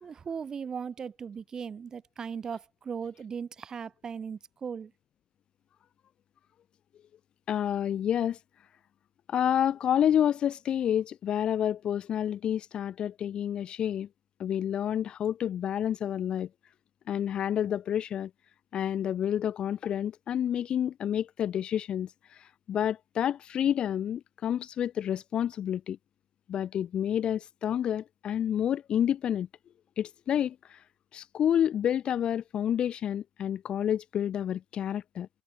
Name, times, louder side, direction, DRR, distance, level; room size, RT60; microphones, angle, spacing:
voice 1, 0.0-4.9, right 6 dB, 15° right, 2.4 m, -38 dB
voice 2, 7.5-8.4 9.3-14.1 14.4-16.5 17.1-18.3 18.7-26.0 26.5-29.5 30.0-30.8 31.1-35.3, left 9 dB, 25° left, 1.5 m, -29 dB
supercardioid pair, 170°, 4 cm